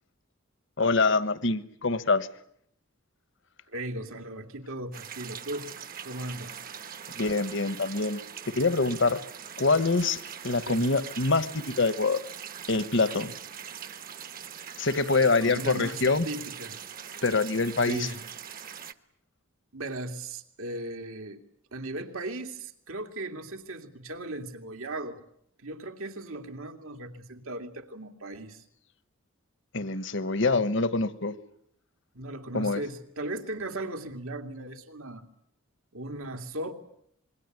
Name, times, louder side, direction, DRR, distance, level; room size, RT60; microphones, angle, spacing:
voice 1, 0.8-2.3 7.1-8.2 8.6-9.2 9.6-12.2 12.7-13.3 14.8-16.3 17.2-18.1 29.7-31.3 32.5-32.8, left 3 dB, 60° left, 15 dB, 1.3 m, -25 dB
voice 2, 3.7-5.7 6.0-6.6 10.6-10.8 15.2-16.8 17.9-18.2 19.7-21.4 21.7-25.2 25.6-28.6 32.1-35.2 35.9-36.7, right 1 dB, 75° right, 5 dB, 2.6 m, -37 dB
sound 1, 4.9-18.9, right 8 dB, 40° right, 1.1 m, -42 dB
26.0 x 22.0 x 9.3 m, 0.70 s
head